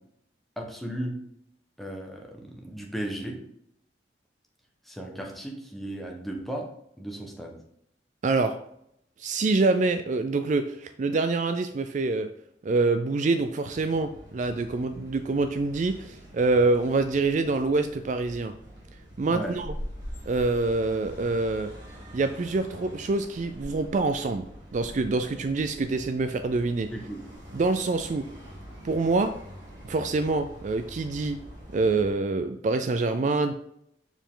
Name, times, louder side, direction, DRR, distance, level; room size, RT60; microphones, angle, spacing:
voice 1, 0.6-1.1 1.8-3.4 4.9-6.7 7.0-7.6 19.3-19.5 26.9-27.2, right 1 dB, ahead, 0 dB, 1.1 m, -35 dB
voice 2, 8.2-8.6 9.2-12.3 12.6-18.5 19.2-19.7 20.3-21.7 22.1-24.5 24.7-26.9 27.5-28.3 28.8-29.3 29.8-31.4 31.7-33.5, right 3 dB, 45° right, 9 dB, 0.3 m, -26 dB
sound 1, 13.6-32.1, equal, 25° right, 2.2 m, -44 dB
6.9 x 4.5 x 3.8 m, 0.74 s
head